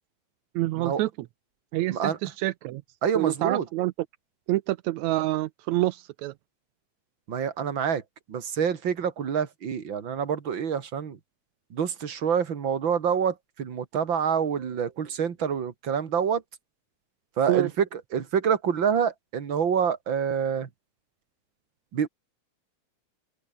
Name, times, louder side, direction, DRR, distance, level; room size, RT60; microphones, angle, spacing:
voice 1, 0.6-1.1 1.7-2.8 3.2-3.9 4.5-6.3 17.5-17.7, right 17 dB, 80° right, 1.8 m, -27 dB
voice 2, 3.0-3.7 7.3-8.0 8.3-11.2 11.7-16.4 17.4-20.7 21.9-22.1, right 7 dB, 45° right, 2.3 m, -27 dB
open air
omnidirectional pair, 3.5 m